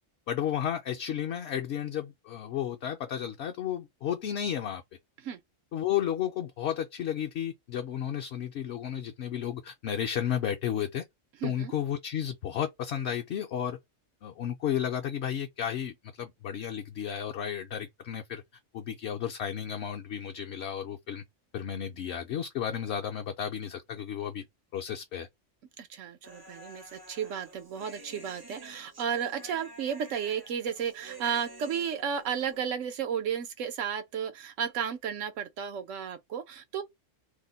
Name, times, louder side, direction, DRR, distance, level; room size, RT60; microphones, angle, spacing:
voice 1, 0.3-4.8 5.7-11.0 11.4-13.8 14.2-18.4 18.7-21.2 21.5-24.4 24.7-25.3, left 9 dB, 65° left, 0.8 m, -33 dB
voice 2, 11.4-11.7 25.8-36.8, right 8 dB, 85° right, 1.1 m, -33 dB
Human voice, 26.2-32.6, right 1 dB, 25° right, 0.5 m, -50 dB
2.8 x 2.1 x 3.8 m
omnidirectional pair, 1.3 m